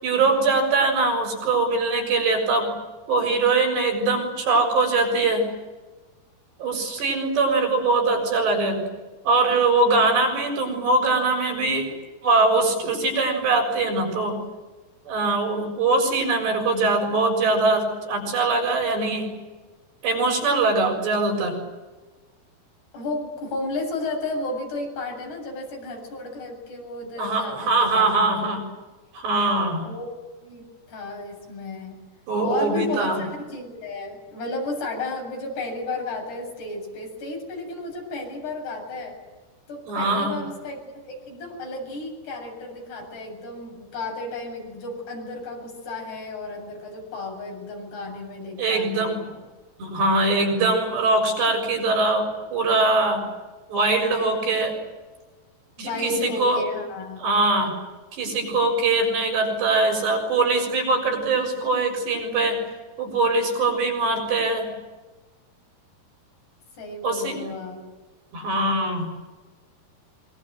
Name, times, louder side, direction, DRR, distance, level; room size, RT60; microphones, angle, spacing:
voice 1, 0.0-2.7 3.1-5.5 6.6-8.9 9.3-11.9 12.2-14.4 15.1-19.3 20.0-21.6 27.2-28.6 29.1-29.9 32.3-33.2 39.9-40.4 48.6-49.2 49.8-53.3 53.7-54.8 55.8-56.6 57.2-57.8 58.1-62.6 63.0-64.7 67.0-67.4 68.3-69.1, right 3 dB, 85° right, 2 dB, 9.1 m, -22 dB
voice 2, 22.9-28.1 28.4-28.6 29.8-30.1 30.4-32.0 32.4-39.2 39.7-49.4 55.8-57.2 66.8-67.8, left 2 dB, 75° left, 1 dB, 9.9 m, -33 dB
25.5 x 24.5 x 8.0 m, 1.2 s
omnidirectional pair, 4.8 m